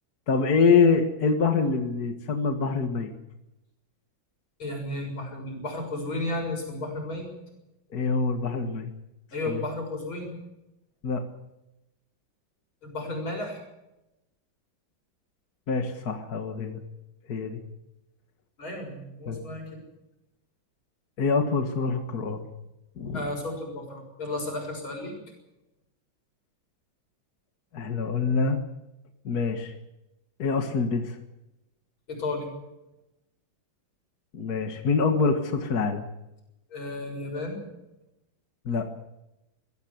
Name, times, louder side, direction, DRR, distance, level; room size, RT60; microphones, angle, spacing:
voice 1, 0.3-3.1 7.9-8.9 9.5-9.6 11.0-11.2 15.7-16.8 17.3-17.6 19.3-19.4 21.2-22.4 23.0-23.3 27.7-28.6 29.2-29.7 30.4-31.2 34.3-36.0 38.7-38.8, left 4 dB, 50° left, 5 dB, 2.2 m, -25 dB
voice 2, 4.6-7.3 9.3-10.3 12.8-13.6 18.6-19.8 23.1-25.1 32.1-32.5 36.7-37.6, left 2 dB, 85° left, 3 dB, 7.6 m, -33 dB
23.0 x 16.0 x 8.1 m, 0.93 s
omnidirectional pair, 2.2 m